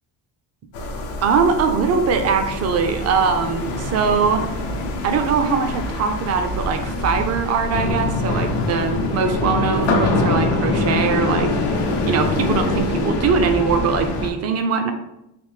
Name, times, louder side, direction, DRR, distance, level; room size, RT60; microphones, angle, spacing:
sound 1, 0.7-14.3, left 2 dB, 85° left, 0.7 m, -24 dB
voice 1, 1.2-4.5 5.0-14.9, right 5 dB, 40° right, 6 dB, 0.5 m, -21 dB
3.3 x 2.6 x 3.3 m, 0.87 s
cardioid pair, 120°, 40 cm